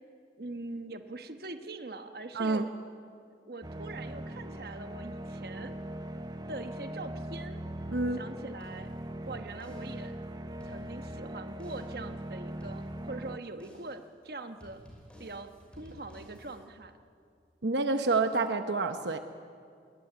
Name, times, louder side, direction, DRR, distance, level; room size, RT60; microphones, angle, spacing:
voice 1, 0.4-2.7 3.4-5.7 6.5-7.6 8.1-8.9 9.3-10.2 10.6-14.8 15.2-16.9, right 2 dB, 60° right, 8 dB, 1.2 m, -43 dB
voice 2, 2.3-2.7 7.9-8.2 17.6-19.2, right 3 dB, 80° right, 7 dB, 0.9 m, -28 dB
sound 1, 3.6-13.4, right 1 dB, 25° right, 0.7 m, -40 dB
sound 2, 8.6-9.2 9.6-10.1 10.5-11.2 11.6-12.1 12.6-13.2 13.6-14.1 14.6-16.6, equal, 5° left, 5.3 m, -53 dB
20.0 x 19.5 x 9.0 m, 2.3 s
head